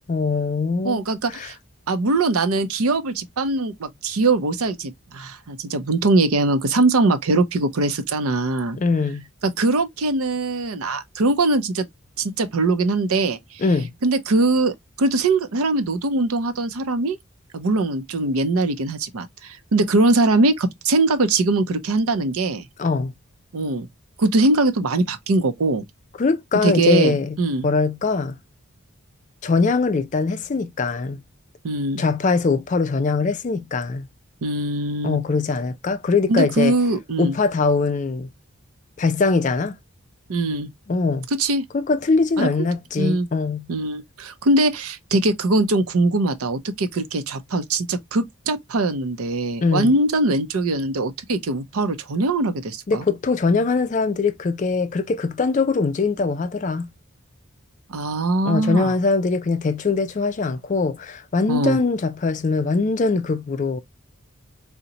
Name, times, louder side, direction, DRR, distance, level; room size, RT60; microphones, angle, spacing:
voice 1, 0.1-1.0 1.3-1.5 8.7-9.2 13.6-13.9 22.8-23.1 26.2-27.4 27.6-28.4 29.4-31.2 32.0-34.1 35.0-36.8 37.2-38.3 39.0-39.8 40.9-41.3 41.7-43.7 49.6-49.9 52.9-56.9 58.5-63.8, left 4 dB, 35° left, 0.3 m, -22 dB
voice 2, 0.8-1.6 1.9-8.8 9.4-11.9 12.2-13.6 14.0-17.2 17.5-22.6 23.5-23.9 24.2-25.8 26.6-27.7 31.6-32.0 34.4-35.2 36.3-37.3 40.3-40.7 41.4-41.6 42.4-42.7 43.0-43.3 43.7-53.0 57.9-58.9 61.5-61.8, right 2 dB, 85° right, 0.6 m, -21 dB
3.8 x 2.1 x 2.8 m
head